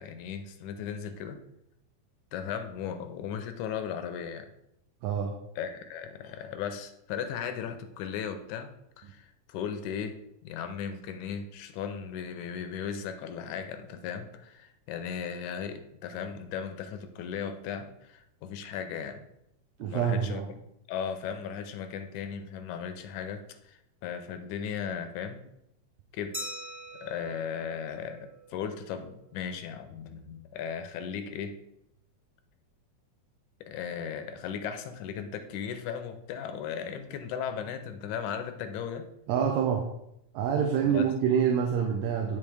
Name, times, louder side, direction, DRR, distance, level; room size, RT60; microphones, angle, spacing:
voice 1, 0.0-1.4 2.3-4.5 5.6-8.7 9.0-19.2 19.8-20.4 20.9-25.4 26.1-26.4 26.9-31.6 33.6-39.1 40.8-41.1, left 7 dB, 80° left, 8 dB, 2.0 m, -36 dB
voice 2, 5.0-5.3 19.8-20.5 39.3-39.9 40.3-42.4, right 7 dB, 75° right, 2 dB, 1.9 m, -26 dB
Glass, 26.3-28.8, equal, 20° right, 0.6 m, -42 dB
11.0 x 3.6 x 3.3 m, 0.82 s
omnidirectional pair, 3.5 m